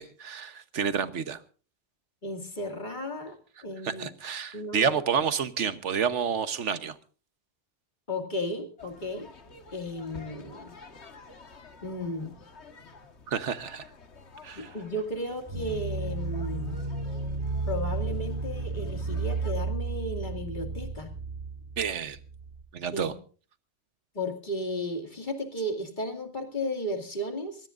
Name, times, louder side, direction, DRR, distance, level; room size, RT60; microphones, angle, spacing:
voice 1, 0.0-1.4 3.8-7.0 13.3-13.9 14.4-14.7 21.8-22.2 22.7-23.1, right 7 dB, 85° right, 12 dB, 1.4 m, -29 dB
voice 2, 2.2-4.1 4.5-4.9 8.1-9.3 9.7-10.7 11.8-12.3 14.6-16.8 17.7-21.1 22.9-23.1 24.1-27.7, left 1 dB, 40° left, 5 dB, 2.5 m, -34 dB
sound 1, 8.8-19.5, left 3 dB, 70° left, 1.9 m, -50 dB
sound 2, 15.5-22.6, right 3 dB, 60° right, 3.3 m, -33 dB
24.5 x 17.5 x 2.5 m, 0.38 s
omnidirectional pair, 1.2 m